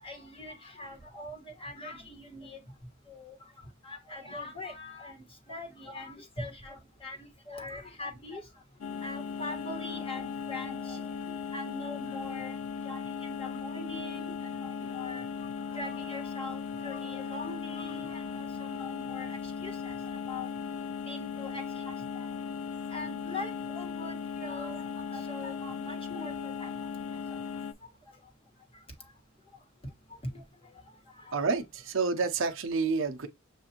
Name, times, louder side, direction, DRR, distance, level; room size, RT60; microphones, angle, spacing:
voice 1, 0.0-2.6 3.1-3.4 3.8-7.2 7.5-8.4 9.0-12.6 12.8-15.3 15.7-20.0 20.3-20.5 21.0-22.3 22.9-26.7 27.3-27.4 30.3-30.4 31.1-31.4 32.2-32.3, left 2 dB, 25° left, 1.3 m, -42 dB
sound 1, 8.8-27.7, left 6 dB, 85° left, 0.4 m, -37 dB
voice 2, 31.3-33.3, right 4 dB, 65° right, 0.6 m, -29 dB
6.8 x 2.5 x 2.8 m
head